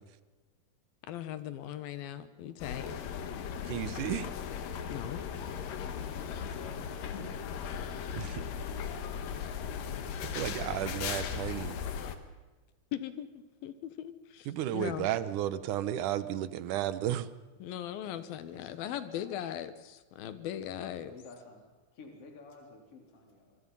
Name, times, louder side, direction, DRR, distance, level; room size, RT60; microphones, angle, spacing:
voice 1, 1.1-2.9 4.9-5.2 12.9-14.5 14.7-15.1 17.6-21.1, left 11 dB, 90° left, 12 dB, 3.1 m, -39 dB
sound 1, 2.6-12.2, left 7 dB, 75° left, 3.0 m, -37 dB
voice 2, 3.6-4.3 8.1-8.4 10.3-11.8 14.5-17.3, right 12 dB, 70° right, 14 dB, 2.2 m, -33 dB
voice 3, 7.0-7.3 9.2-9.3 18.0-19.4 21.0-21.6 21.9-23.6, left 4 dB, 40° left, 2 dB, 4.4 m, -51 dB
26.0 x 23.5 x 5.6 m, 1.2 s
omnidirectional pair, 4.1 m